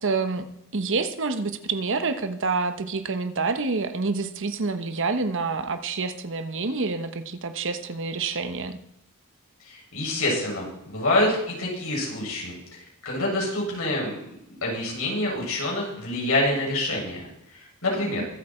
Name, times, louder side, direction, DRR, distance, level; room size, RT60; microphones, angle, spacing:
voice 1, 0.0-0.4 0.7-8.8 18.0-18.3, right 4 dB, 60° right, 9 dB, 1.1 m, -27 dB
voice 2, 9.6-12.6 13.0-14.1 14.6-17.3 17.5-18.2, left 1 dB, 75° left, -3 dB, 7.0 m, -26 dB
23.0 x 8.3 x 4.5 m, 0.82 s
head